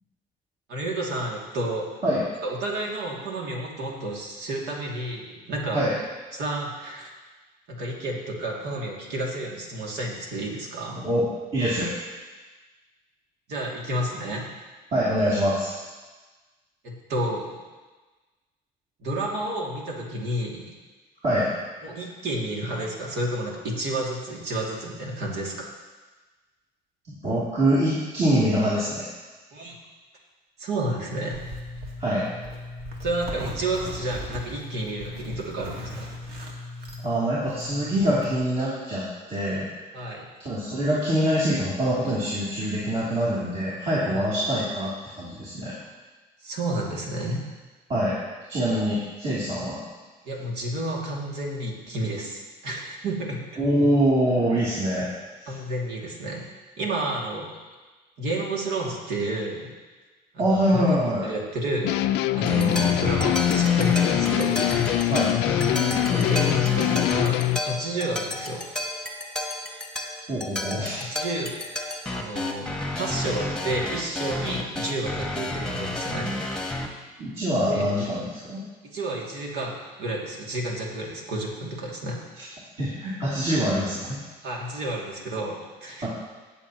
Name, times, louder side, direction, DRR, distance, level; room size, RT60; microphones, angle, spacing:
voice 1, 0.7-1.9 2.4-5.8 6.3-7.1 7.7-11.1 13.5-14.5 16.8-17.5 19.0-20.7 21.8-25.7 29.5-29.8 30.6-31.4 33.0-36.1 39.9-40.2 44.1-44.2 46.4-47.4 50.2-53.4 55.5-56.4 56.8-57.5 58.2-59.7 60.3-61.0 61.2-62.0 62.3-64.6 66.0-68.6 71.1-71.5 72.1-72.7 72.9-76.3 76.6-77.0 77.7-77.9 78.9-82.2 84.4-86.1, right 1 dB, 80° right, -2 dB, 2.4 m, -30 dB
voice 2, 11.0-11.3 11.5-11.9 14.9-15.7 21.2-21.6 27.1-29.1 32.0-32.3 37.0-39.7 40.4-45.7 47.9-48.2 48.5-49.8 53.6-55.1 55.4-55.5 60.4-61.3 65.1-65.4 70.3-71.1 77.2-78.6 82.4-82.5 82.8-84.2 86.0-86.1, equal, 40° right, -9 dB, 3.0 m, -24 dB
Zipper (clothing), 31.1-38.4, left 1 dB, 65° right, 1.9 m, -37 dB
sound 1, 61.8-67.6, left 13 dB, 85° left, 0.4 m, -23 dB
sound 2, 62.5-76.9, left 1 dB, 5° left, 1.2 m, -30 dB
18.0 x 7.1 x 3.0 m, 1.3 s
cardioid pair, 110°, 17 cm